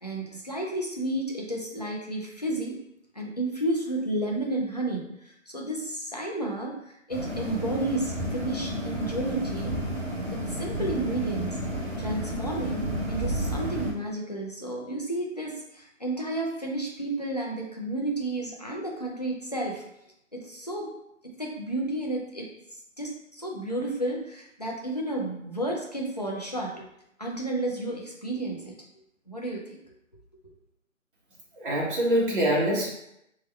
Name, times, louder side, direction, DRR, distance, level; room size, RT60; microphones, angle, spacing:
voice 1, 0.0-2.8 3.1-6.8 7.1-9.8 10.3-11.7 12.0-19.8 20.3-20.9 21.2-22.5 23.0-26.8 27.2-28.7 29.3-29.8, right 1 dB, 35° left, -2 dB, 0.4 m, -32 dB
sound 1, 7.1-13.9, equal, 10° right, 0.7 m, -31 dB
voice 2, 31.5-32.9, equal, 40° right, -5 dB, 1.2 m, -24 dB
3.5 x 2.2 x 4.2 m, 0.79 s
hypercardioid pair, 170°, 40 cm